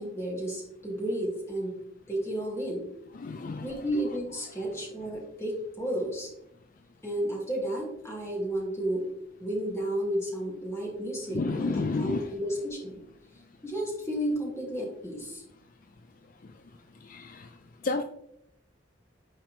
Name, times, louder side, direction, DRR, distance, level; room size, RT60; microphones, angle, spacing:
voice 1, 0.0-1.7 2.1-2.9 3.6-6.3 7.0-9.0 9.4-11.7 12.0-13.0 13.6-15.4, right 1 dB, 15° left, -3 dB, 2.2 m, -32 dB
voice 2, 3.2-3.7 11.3-12.3 17.1-17.5 17.8-18.0, left 3 dB, 45° left, 7 dB, 0.4 m, -30 dB
10.0 x 4.6 x 3.2 m, 0.79 s
head